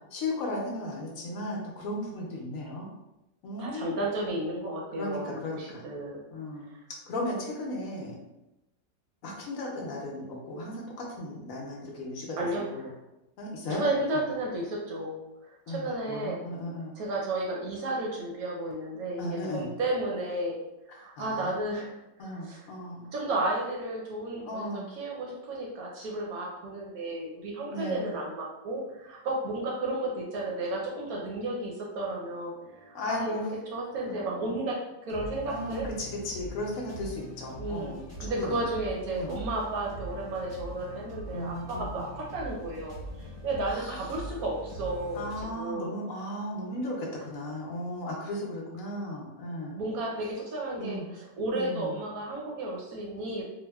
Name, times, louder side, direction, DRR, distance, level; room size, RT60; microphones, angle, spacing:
voice 1, 0.1-2.9 3.4-4.0 5.0-5.8 6.3-6.7 7.1-8.2 9.2-12.9 13.4-13.8 14.1-14.2 15.7-16.9 19.2-19.7 21.2-21.5 22.2-23.1 24.4-24.9 27.7-28.1 32.9-33.5 34.0-34.5 35.5-38.6 39.1-39.3 41.3-42.0 43.6-44.3 45.1-49.8 50.8-51.0 51.5-52.0, left 1 dB, 65° left, -2 dB, 0.9 m, -36 dB
voice 2, 3.6-6.2 12.4-12.9 13.7-16.4 17.0-20.6 20.9-22.7 23.1-32.5 32.8-33.4 33.7-35.9 37.6-45.9 49.7-53.4, right 2 dB, 70° right, -2 dB, 0.9 m, -33 dB
sound 1, 28.8-29.9 30.2-34.5 35.1-45.4, right 1 dB, 15° right, 0.6 m, -44 dB
3.3 x 2.3 x 2.2 m, 0.94 s
omnidirectional pair, 1.9 m